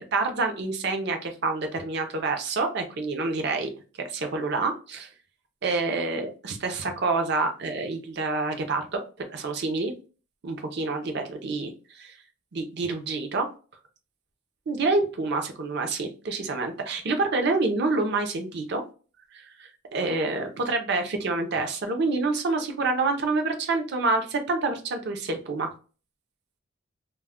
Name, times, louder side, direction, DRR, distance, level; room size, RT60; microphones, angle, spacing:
voice 1, 0.0-3.7 4.0-5.1 5.6-9.9 10.4-12.1 12.5-13.5 14.7-18.8 19.3-25.7, right 3 dB, 50° right, 5 dB, 0.5 m, -27 dB
2.2 x 2.1 x 3.4 m, 0.36 s
head